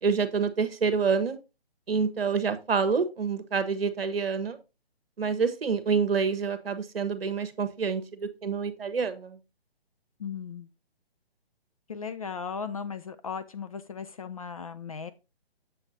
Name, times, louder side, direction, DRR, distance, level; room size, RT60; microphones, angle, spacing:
voice 1, 0.0-1.4 1.9-4.6 5.2-9.4, right 5 dB, 65° right, 1.2 m, -27 dB
voice 2, 10.2-10.7 11.9-15.1, left 6 dB, 35° left, 0.4 m, -37 dB
7.3 x 6.8 x 2.7 m
figure-of-eight pair, 145°, 32 cm